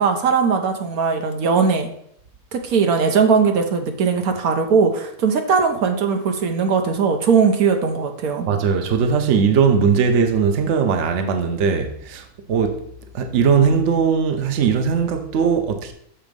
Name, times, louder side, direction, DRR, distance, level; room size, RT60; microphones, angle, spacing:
voice 1, 0.0-1.9 2.5-8.5, right 5 dB, 80° right, 1.3 m, -19 dB
voice 2, 8.5-12.8 13.1-15.9, right 6 dB, 60° right, 1.0 m, -19 dB
6.7 x 4.5 x 5.2 m
omnidirectional pair, 1.5 m